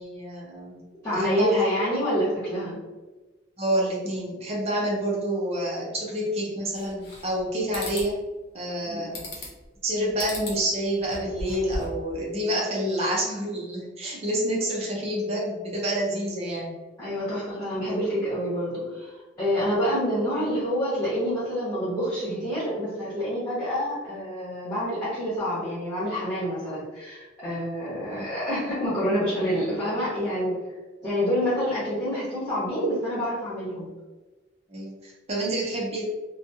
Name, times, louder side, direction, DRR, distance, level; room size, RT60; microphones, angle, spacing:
voice 1, 0.0-0.9 1.1-1.6 3.6-8.2 8.5-9.5 9.8-16.7 28.1-28.2 34.7-36.0, right 1 dB, 35° right, -3 dB, 0.7 m, -28 dB
voice 2, 1.0-2.8 8.8-9.1 17.0-30.6 31.0-33.9, equal, 20° left, -13 dB, 1.3 m, -27 dB
sound 1, 6.8-7.4 7.7-8.1 9.1-9.7 10.2-10.6 11.0-12.0, left 1 dB, 60° left, 0.8 m, -36 dB
3.1 x 2.3 x 2.7 m, 1.2 s
head